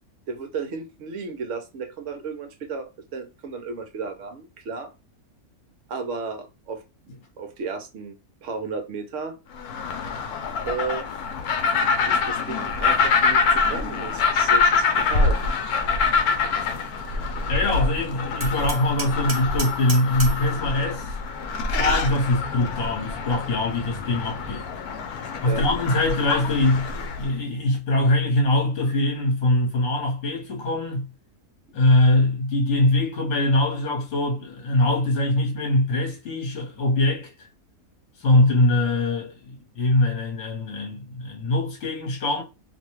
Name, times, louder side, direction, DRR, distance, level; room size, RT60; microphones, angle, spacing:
voice 1, 0.3-4.9 5.9-6.8 7.4-9.4 10.7-11.1 12.1-15.4 25.4-25.6, right 4 dB, 65° right, 0.9 m, -33 dB
sound 1, 9.6-27.3, left 4 dB, 85° left, 1.1 m, -25 dB
voice 2, 17.5-21.2 21.7-24.6 25.4-26.9 27.2-31.1 31.7-37.3 38.2-42.4, left 1 dB, 55° left, 1.3 m, -22 dB
Hammer, 18.4-20.5, right 3 dB, 35° right, 0.9 m, -33 dB
2.7 x 2.2 x 3.0 m
omnidirectional pair, 1.6 m